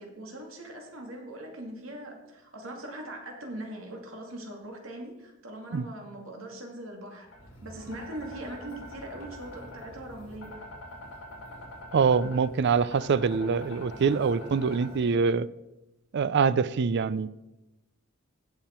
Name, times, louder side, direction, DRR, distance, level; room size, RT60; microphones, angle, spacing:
voice 1, 0.0-7.3 7.6-10.5, right 1 dB, 75° right, 2.2 m, -41 dB
sound 1, 7.3-15.1, left 1 dB, 65° left, 3.6 m, -45 dB
voice 2, 11.9-15.5 16.1-17.3, right 5 dB, 55° right, 0.4 m, -24 dB
16.5 x 5.8 x 4.4 m
head